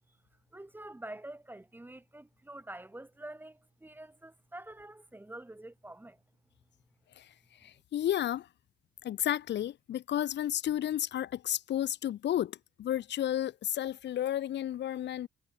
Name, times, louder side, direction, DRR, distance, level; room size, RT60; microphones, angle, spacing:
voice 1, 0.5-6.2, right 1 dB, 10° right, 1.0 m, -47 dB
voice 2, 7.6-8.5 9.0-15.3, left 11 dB, 65° left, 0.8 m, -32 dB
cardioid pair, 90°, 20 cm